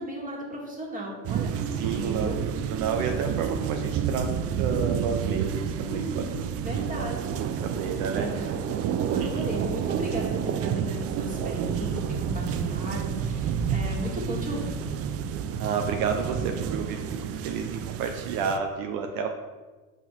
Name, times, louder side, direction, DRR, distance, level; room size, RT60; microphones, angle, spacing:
voice 1, 0.0-2.4 5.8-7.2 7.8-8.7 9.1-14.9, right 1 dB, 15° right, -2 dB, 1.9 m, -35 dB
sound 1, 1.2-18.6, right 8 dB, 35° right, 0.4 m, -30 dB
voice 2, 1.7-4.3 4.6-6.3 6.6-8.6 8.9-9.4 15.6-19.3, right 6 dB, 65° right, 4 dB, 0.7 m, -31 dB
5.7 x 4.2 x 4.4 m, 1.3 s
hypercardioid pair, 85°, 45 cm